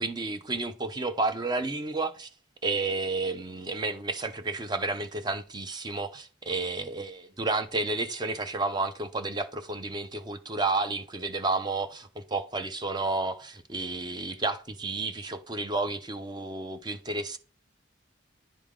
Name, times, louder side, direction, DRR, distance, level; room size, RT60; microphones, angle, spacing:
voice 1, 0.0-2.3 2.6-17.4, right 3 dB, 25° right, 0.6 m, -31 dB
10.0 x 3.4 x 3.6 m
head